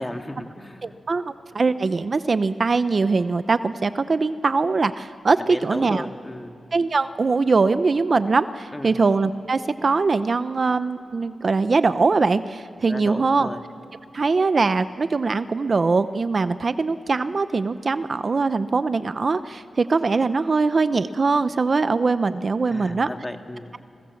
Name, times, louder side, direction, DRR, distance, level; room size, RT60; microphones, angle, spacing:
voice 1, 0.0-0.9 5.5-6.6 8.7-8.9 12.9-13.6 22.7-23.7, left 1 dB, 15° left, 5 dB, 1.9 m, -35 dB
voice 2, 0.8-6.1 6.7-13.5 14.1-23.1, right 4 dB, 50° right, 12 dB, 0.7 m, -22 dB
30.0 x 22.0 x 7.2 m, 2.8 s
wide cardioid pair, 85°, 0 cm